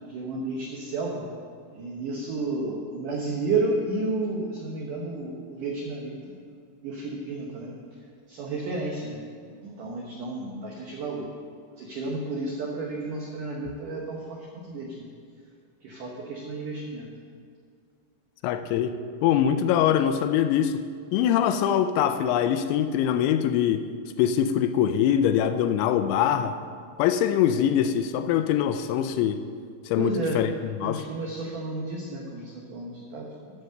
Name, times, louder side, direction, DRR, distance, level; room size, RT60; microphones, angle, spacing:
voice 1, 0.1-1.2 1.7-6.2 6.8-7.8 8.3-9.2 9.6-11.3 11.8-15.1 15.8-17.1 30.0-30.4 30.8-33.3, right 3 dB, 85° right, -2 dB, 1.8 m, -31 dB
voice 2, 18.4-19.0 19.2-20.8 21.1-23.8 24.2-26.6 27.0-29.4 29.9-30.5 30.8-31.0, left 9 dB, 85° left, 9 dB, 2.8 m, -23 dB
11.0 x 7.0 x 6.5 m, 2.1 s
omnidirectional pair, 5.4 m